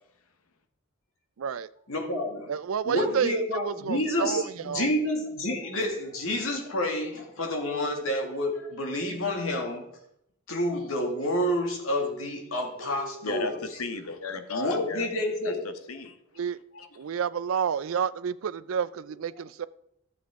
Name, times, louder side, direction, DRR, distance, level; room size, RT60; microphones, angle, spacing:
voice 1, 1.4-1.7 2.5-3.4 3.6-4.9 16.4-16.6 17.0-19.7, right 7 dB, 70° right, 17 dB, 0.4 m, -29 dB
voice 2, 1.9-2.5 2.8-9.8 10.5-13.8 14.5-15.6, left 1 dB, 70° left, 1 dB, 2.2 m, -29 dB
voice 3, 13.2-13.5 13.8-15.1 15.6-16.2, left 4 dB, 85° left, 9 dB, 1.0 m, -34 dB
12.5 x 7.6 x 3.6 m, 0.77 s
head